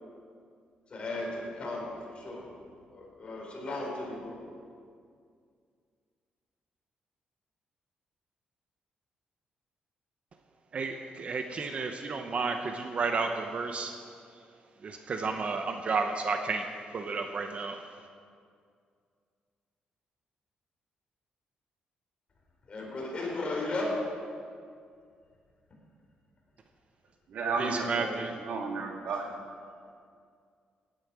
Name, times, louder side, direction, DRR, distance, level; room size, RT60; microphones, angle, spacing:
voice 1, 0.9-2.4 2.9-4.4 22.7-23.9, left 2 dB, 35° left, -2 dB, 4.5 m, -35 dB
voice 2, 10.7-13.9 14.8-16.7 16.9-17.9 27.6-28.3, right 4 dB, 45° right, 5 dB, 0.9 m, -32 dB
voice 3, 27.3-28.2 28.5-29.3, right 4 dB, 70° right, 1 dB, 2.1 m, -32 dB
17.5 x 10.5 x 4.9 m, 2.2 s
cardioid pair, 125°, 3 cm